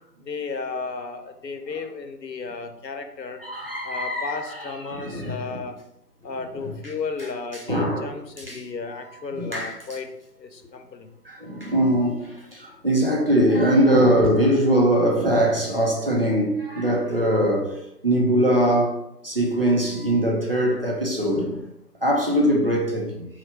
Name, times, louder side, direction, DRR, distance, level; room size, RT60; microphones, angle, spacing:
voice 1, 0.2-3.4 3.8-5.8 6.2-10.1 10.4-11.1 14.2-14.3, left 4 dB, 80° left, 0.9 m, -33 dB
voice 2, 3.4-5.6 7.2-8.6 9.3-9.8 11.2-17.7 18.0-21.6 22.0-23.3, right 1 dB, 35° right, 0.7 m, -22 dB
4.4 x 2.4 x 4.4 m
figure-of-eight pair, 170°, 50 cm